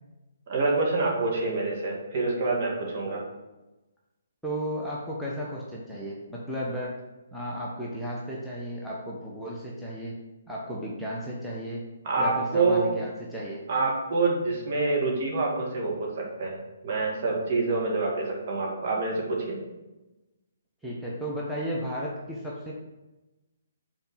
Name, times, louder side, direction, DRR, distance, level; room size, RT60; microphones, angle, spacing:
voice 1, 0.5-3.2 12.0-12.9 13.7-19.6, right 3 dB, 45° right, -2 dB, 2.2 m, -27 dB
voice 2, 4.4-6.9 7.3-10.2 10.5-11.8 12.2-13.6 20.8-22.7, equal, ahead, -7 dB, 1.1 m, -34 dB
5.8 x 4.3 x 5.8 m, 1.0 s
figure-of-eight pair, 140°, 0 cm